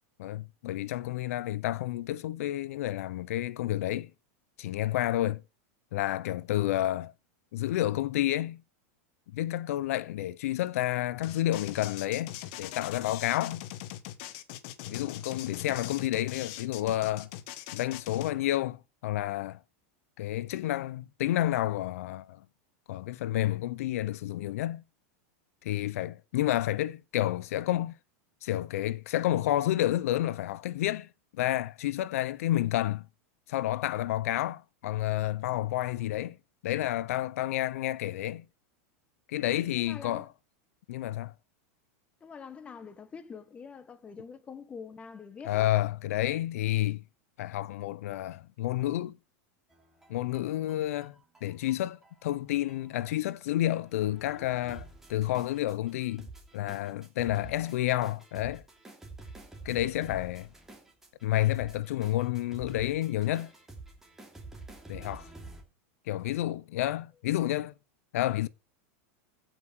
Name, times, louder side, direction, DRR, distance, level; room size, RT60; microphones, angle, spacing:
voice 1, 0.2-4.1 4.6-5.4 5.9-7.1 7.5-8.6 9.3-13.6 14.9-17.3 17.7-19.6 20.2-22.4 22.9-24.8 25.6-28.0 28.4-31.1 31.4-33.1 33.5-36.4 36.6-38.4 39.3-40.3 40.9-41.3 45.5-47.0 47.4-49.2 50.1-56.3 56.5-58.6 59.6-60.5 61.2-63.5 64.9-65.3 66.1-67.7 68.1-68.5, left 14 dB, 70° left, 0.6 m, -30 dB
sound 1, 11.2-18.3, left 13 dB, 45° left, 1.4 m, -41 dB
voice 2, 39.8-40.3 42.2-45.7, left 6 dB, 15° left, 1.2 m, -45 dB
sound 2, 49.7-65.6, right 3 dB, 5° right, 3.0 m, -49 dB
15.5 x 6.0 x 6.1 m
supercardioid pair, 165°, 8 cm